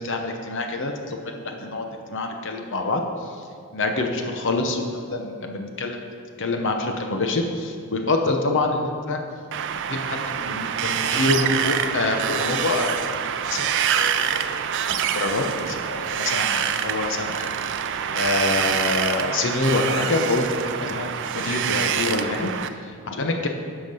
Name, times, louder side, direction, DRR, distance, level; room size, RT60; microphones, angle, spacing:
voice 1, 0.0-3.0 3.7-6.0 6.4-9.2 9.9-13.0 13.2-14.5 14.9-17.5 18.1-22.5 23.1-23.5, left 2 dB, 60° left, 4 dB, 0.9 m, -26 dB
Wind, 9.5-22.7, right 8 dB, 55° right, 0.4 m, -26 dB
10.0 x 5.9 x 5.5 m, 2.2 s
head